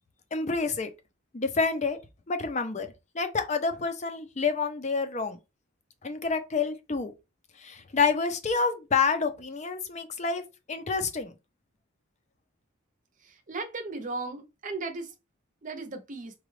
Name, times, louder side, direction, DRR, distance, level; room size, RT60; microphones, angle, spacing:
voice 1, 0.3-0.9 1.3-2.0 2.3-2.9 3.1-5.4 6.0-7.1 7.6-10.4 10.7-11.3, left 4 dB, 35° left, 0.6 m, -28 dB
voice 2, 13.5-15.1 15.6-16.3, right 3 dB, 40° right, 0.7 m, -36 dB
4.9 x 2.3 x 3.2 m
head